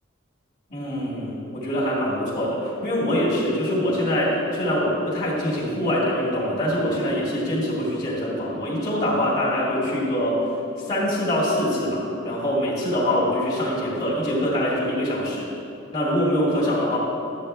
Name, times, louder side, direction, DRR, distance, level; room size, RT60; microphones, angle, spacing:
voice 1, 0.7-10.4 10.9-15.5 15.9-17.0, equal, 30° left, -9 dB, 2.3 m, -24 dB
12.5 x 8.8 x 3.4 m, 2.7 s
head